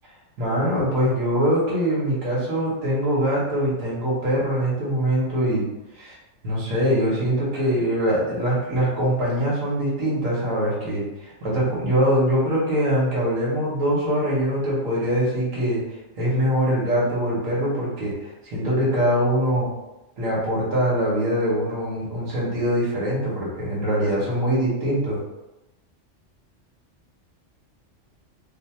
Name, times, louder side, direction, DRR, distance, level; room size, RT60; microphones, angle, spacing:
voice 1, 0.4-5.6 5.9-6.2 6.4-15.8 16.2-19.7 20.2-25.2, equal, 90° right, -7 dB, 1.4 m, -23 dB
3.3 x 2.1 x 4.2 m, 0.98 s
omnidirectional pair, 1.3 m